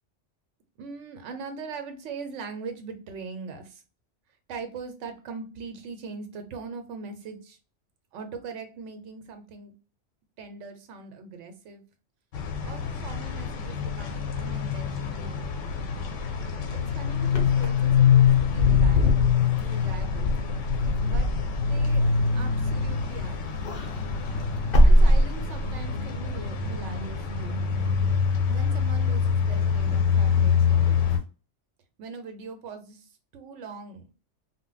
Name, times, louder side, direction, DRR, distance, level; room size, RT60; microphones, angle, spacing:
voice 1, 0.8-3.8 4.5-7.6 8.1-9.7 10.4-11.8 12.6-15.7 16.7-19.2 19.6-20.4 21.0-23.5 24.8-27.6 28.5-31.1 32.0-33.0 33.3-34.0, right 4 dB, 80° right, 7 dB, 1.0 m, -41 dB
sound 1, 12.3-31.2, left 7 dB, 80° left, 0.9 m, -25 dB
Wind / Car, 17.2-23.1 23.4-25.8, equal, 60° left, 0.7 m, -23 dB
2.2 x 2.0 x 3.8 m, 0.34 s
omnidirectional pair, 1.2 m